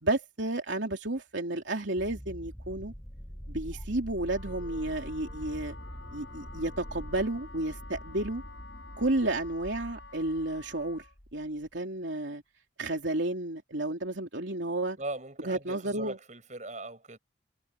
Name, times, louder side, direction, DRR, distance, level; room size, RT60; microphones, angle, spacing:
voice 1, 0.0-2.9 3.5-5.8 6.1-8.4 9.0-11.0 11.3-12.4 12.8-15.0 15.4-16.2, right 2 dB, 75° right, 3.1 m, -32 dB
sound 1, 1.7-11.8, equal, 45° left, 3.1 m, -50 dB
sound 2, 2.0-7.3, equal, ahead, 4.8 m, -43 dB
Wind instrument woodwind instrument, 4.1-11.2, left 4 dB, 75° left, 6.2 m, -50 dB
voice 2, 15.0-17.2, right 2 dB, 40° right, 7.2 m, -40 dB
head